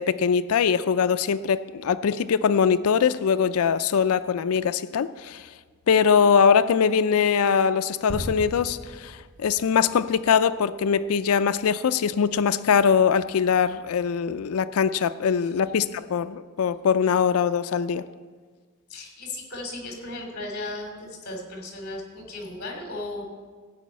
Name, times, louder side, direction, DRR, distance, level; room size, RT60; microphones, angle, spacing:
voice 1, 0.0-5.5 5.9-18.0, left 6 dB, 75° left, 13 dB, 0.4 m, -22 dB
sound 1, 8.1-10.1, equal, ahead, 3.2 m, -37 dB
voice 2, 15.4-15.9 18.9-23.2, left 2 dB, 45° left, 1 dB, 3.1 m, -36 dB
16.0 x 5.4 x 8.4 m, 1.5 s
head